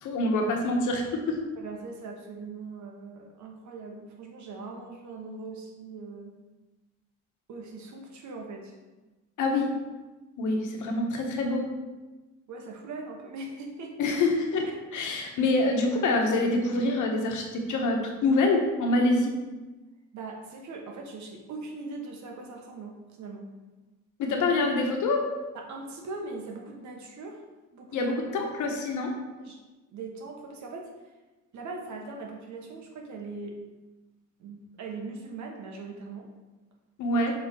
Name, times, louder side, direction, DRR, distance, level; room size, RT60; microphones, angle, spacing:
voice 1, 0.0-1.4 9.4-9.7 10.4-11.7 14.0-14.6 14.9-19.3 24.2-25.3 27.9-29.1 37.0-37.3, left 2 dB, 80° left, 2 dB, 1.2 m, -26 dB
voice 2, 1.6-6.3 7.5-8.7 12.5-14.2 14.6-14.7 20.1-23.5 25.5-27.4 27.7-28.1 29.4-29.6 29.9-30.9 31.5-33.6 34.4-36.3 37.1-37.3, right 3 dB, 70° right, 1 dB, 1.4 m, -40 dB
7.0 x 3.6 x 4.5 m, 1.2 s
cardioid pair, 90°, 30 cm